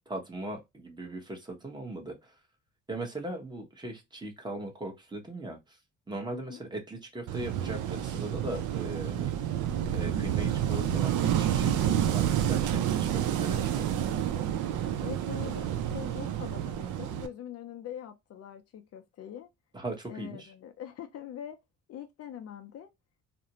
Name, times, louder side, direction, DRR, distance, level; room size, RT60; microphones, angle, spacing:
voice 1, 0.0-2.3 2.9-5.8 6.1-9.3 9.9-12.6 12.9-14.0 19.7-20.5, right 1 dB, 15° right, 0.8 m, -39 dB
Wind / Waves surf, 7.3-17.3, right 10 dB, 75° right, 0.5 m, -29 dB
voice 2, 15.0-19.5 20.1-21.6 21.9-22.9, left 10 dB, 55° left, 0.4 m, -43 dB
2.5 x 2.1 x 2.7 m
cardioid pair, 90°, 30 cm